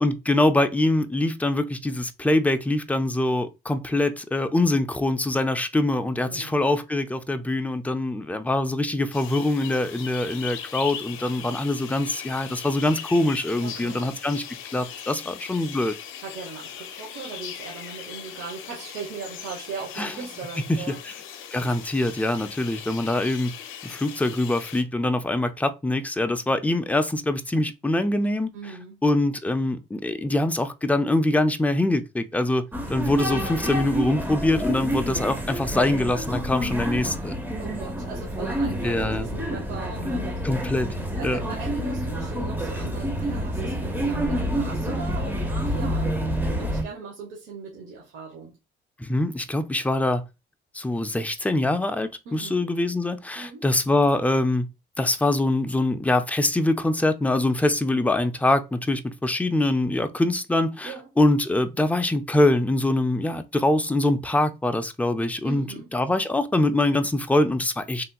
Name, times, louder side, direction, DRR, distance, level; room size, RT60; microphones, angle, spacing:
voice 1, 0.0-14.4 14.7-15.9 20.0-20.1 20.9-21.0 21.5-23.5 23.8-28.5 29.0-37.4 38.8-39.3 40.1-40.2 40.4-40.9 41.2-41.4 49.0-50.3 50.7-54.7 55.0-68.0, left 2 dB, 5° left, 0.4 m, -24 dB
voice 2, 6.2-6.6 13.6-14.2 16.2-21.0 28.5-29.0 37.6-40.6 41.1-48.6 52.2-52.6 53.3-53.6 60.8-61.1 65.4-65.9, right 5 dB, 85° right, 0.9 m, -39 dB
sound 1, 9.1-24.8, left 9 dB, 85° left, 0.5 m, -39 dB
sound 2, 32.7-46.8, equal, 10° right, 0.9 m, -28 dB
3.3 x 2.8 x 2.3 m
cardioid pair, 90°, 20 cm